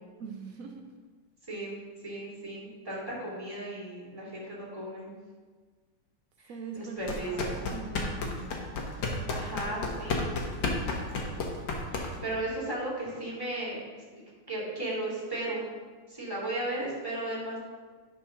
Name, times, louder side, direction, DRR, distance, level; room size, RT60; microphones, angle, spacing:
voice 1, 0.2-0.9 6.5-8.6, right 5 dB, 85° right, 3 dB, 0.7 m, -42 dB
voice 2, 1.5-1.8 2.0-5.1 6.7-7.6 9.3-10.3 11.2-11.5 11.9-13.8 14.5-15.6 16.1-17.6, right 1 dB, 10° right, -6 dB, 2.5 m, -35 dB
sound 1, 7.0-12.4, left 3 dB, 65° left, 1.7 m, -32 dB
9.7 x 4.5 x 5.7 m, 1.5 s
omnidirectional pair, 2.3 m